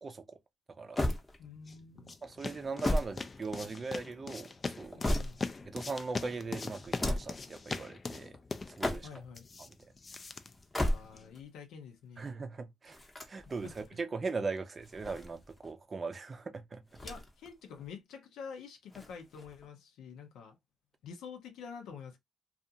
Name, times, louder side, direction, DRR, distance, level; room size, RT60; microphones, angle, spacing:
voice 1, 0.0-0.4 0.8-1.1 2.2-4.5 4.8-5.0 5.6-8.4 8.8-9.1 9.6-9.7 12.2-13.0 13.3-16.8, right 4 dB, 35° right, 0.5 m, -39 dB
sound 1, 1.0-1.8 2.6-3.9 4.6-5.7 6.8-7.5 8.6-9.4 10.5-11.4 12.9-13.9 14.8-15.7 16.9-17.5 17.8-17.9 18.9-19.7, left 1 dB, 15° left, 0.8 m, -35 dB
sound 2, 1.3-11.4, left 4 dB, 30° left, 0.4 m, -42 dB
voice 2, 1.4-2.1 4.9-5.4 9.0-9.5 10.8-12.3 13.6-14.0 17.0-20.6 21.0-22.2, left 6 dB, 85° left, 0.6 m, -47 dB
2.5 x 2.4 x 2.7 m
cardioid pair, 90°, 0 cm